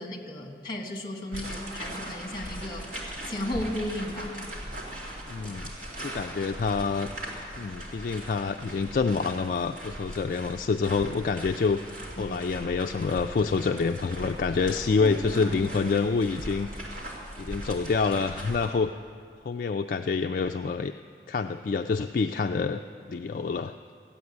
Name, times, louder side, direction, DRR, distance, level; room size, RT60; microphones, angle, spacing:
voice 1, 0.0-2.9 3.3-4.4 12.2-12.4 15.0-15.4, left 1 dB, 25° left, 2 dB, 1.8 m, -34 dB
sound 1, 1.3-18.7, equal, 45° right, 2.8 m, -39 dB
voice 2, 5.3-5.7 6.0-7.1 7.6-11.9 12.2-16.7 17.4-18.9 19.5-20.9 21.3-22.8 23.1-23.7, left 4 dB, 50° left, 6 dB, 0.3 m, -27 dB
14.5 x 8.6 x 9.6 m, 2.2 s
head